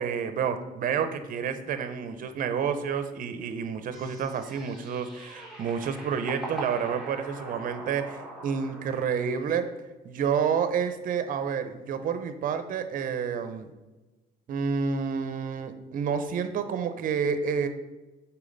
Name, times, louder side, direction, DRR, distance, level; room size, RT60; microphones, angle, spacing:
voice 1, 0.0-9.7 10.0-13.7 14.5-17.7, right 6 dB, 55° right, 9 dB, 0.7 m, -29 dB
sound 1, 3.9-9.4, right 2 dB, ahead, 1.8 m, -42 dB
6.9 x 4.5 x 4.0 m, 1.1 s
cardioid pair, 110°, 17 cm